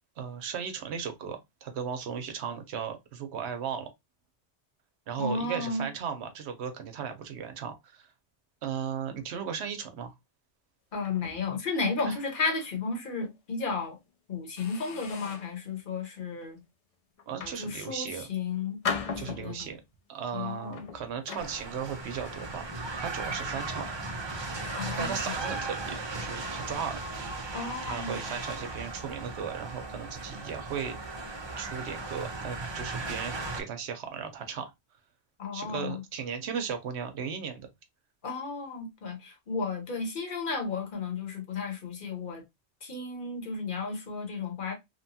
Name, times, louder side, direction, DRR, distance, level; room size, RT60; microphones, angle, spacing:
voice 1, 0.2-3.9 5.1-8.1 8.6-10.1 12.0-12.2 17.3-18.3 19.2-19.8 20.1-23.9 25.0-27.0 27.8-31.0 31.6-34.7 35.5-37.7, right 7 dB, 70° right, 0.9 m, -36 dB
voice 2, 5.2-5.9 10.9-14.0 14.3-16.6 17.4-18.8 19.1-19.7 20.3-20.8 24.7-25.2 27.5-28.2 35.4-36.0 38.2-42.4 42.8-44.7, left 4 dB, 50° left, 1.0 m, -33 dB
sound 1, 11.0-12.8 13.2-13.4 13.9-14.1 14.6-15.6 16.2-16.5 17.2-18.2 18.8-19.8 20.6-23.0 23.2-23.5 24.1-24.2 24.6-25.1, left 6 dB, 70° left, 0.3 m, -40 dB
sound 2, 21.4-33.6, right 3 dB, 45° right, 0.3 m, -37 dB
2.8 x 2.2 x 2.6 m
omnidirectional pair, 1.2 m